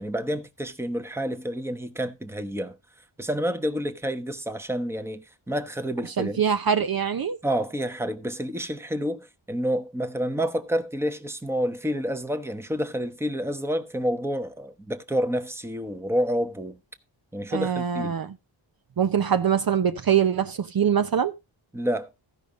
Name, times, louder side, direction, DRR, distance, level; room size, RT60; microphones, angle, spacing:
voice 1, 0.0-2.8 3.2-6.4 7.4-16.8 17.3-18.2 21.7-22.1, equal, 5° right, 1.0 m, -29 dB
voice 2, 6.2-7.4 17.5-18.3 19.0-21.3, right 8 dB, 50° right, 0.8 m, -23 dB
15.0 x 5.4 x 4.9 m
wide cardioid pair, 130°, 48 cm